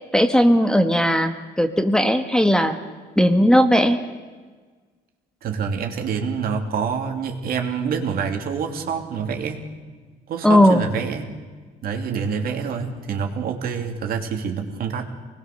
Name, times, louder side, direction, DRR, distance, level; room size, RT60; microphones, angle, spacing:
voice 1, 0.1-2.7 3.2-4.0 10.4-10.8, equal, 5° left, 7 dB, 1.4 m, -17 dB
voice 2, 5.4-9.7 10.3-11.3 11.8-15.1, right 6 dB, 60° right, 4 dB, 2.9 m, -26 dB
25.0 x 20.5 x 6.8 m, 1.4 s
cardioid pair, 110°, 17 cm